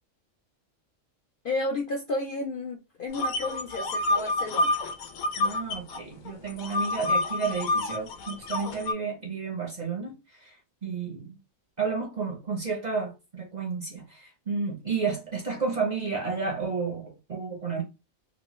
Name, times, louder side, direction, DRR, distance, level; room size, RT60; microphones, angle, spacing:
voice 1, 1.4-4.8, left 2 dB, 65° left, 0.5 m, -32 dB
sound 1, 3.1-6.0 6.3-8.9, left 2 dB, 90° left, 1.1 m, -28 dB
voice 2, 5.4-11.4 11.8-17.8, right 5 dB, 45° right, 0.6 m, -32 dB
2.9 x 2.1 x 3.0 m
omnidirectional pair, 1.4 m